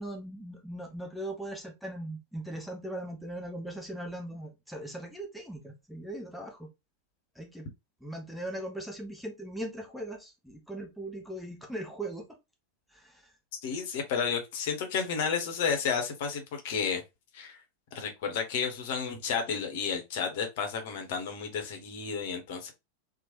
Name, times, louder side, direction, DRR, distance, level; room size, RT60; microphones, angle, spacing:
voice 1, 0.0-6.7 7.4-7.7 8.0-12.3 12.9-13.3, right 1 dB, ahead, 0.6 m, -39 dB
voice 2, 13.6-17.0 17.3-17.6 17.9-22.7, left 6 dB, 50° left, 0.7 m, -32 dB
2.9 x 2.0 x 2.9 m
figure-of-eight pair, 90°, 0 cm